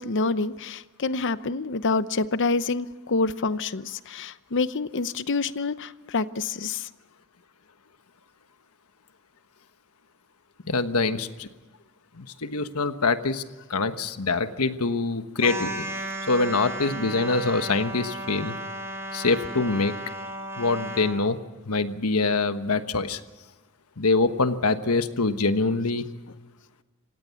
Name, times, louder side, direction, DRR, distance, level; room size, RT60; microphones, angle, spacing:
voice 1, 0.0-6.9, left 3 dB, 55° left, 14 dB, 0.8 m, -27 dB
voice 2, 10.7-11.5 12.1-13.4 13.7-15.8 16.3-18.6 19.1-19.9 20.6-21.4 21.6-23.2 24.0-26.1, left 3 dB, 85° left, 10 dB, 1.3 m, -24 dB
sound 1, 15.4-21.2, right 1 dB, 10° right, 3.6 m, -34 dB
26.5 x 17.5 x 7.2 m, 1.2 s
head